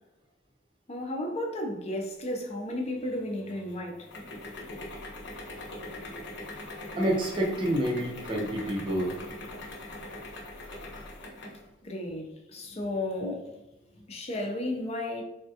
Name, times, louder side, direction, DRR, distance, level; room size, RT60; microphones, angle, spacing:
voice 1, 0.9-4.1 11.8-13.5 14.1-15.2, left 1 dB, 35° left, 0.6 m, -33 dB
sound 1, 2.8-11.7, left 2 dB, 65° left, 0.7 m, -42 dB
voice 2, 7.0-9.1, right 1 dB, 30° right, 0.6 m, -28 dB
3.5 x 2.2 x 2.7 m
head